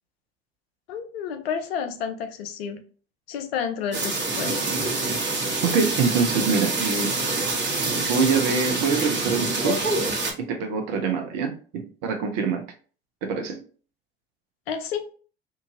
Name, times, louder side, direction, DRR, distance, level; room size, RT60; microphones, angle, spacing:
voice 1, 0.9-2.8 3.3-4.7 14.7-15.1, left 7 dB, 75° left, 8 dB, 0.6 m, -30 dB
sound 1, 3.9-10.3, right 3 dB, 35° right, 1.2 m, -26 dB
voice 2, 5.6-7.1 7.9-9.8 10.4-12.6 13.2-13.6, right 5 dB, 60° right, 4 dB, 0.9 m, -25 dB
2.8 x 2.6 x 2.7 m, 0.41 s
figure-of-eight pair, 60°, 31 cm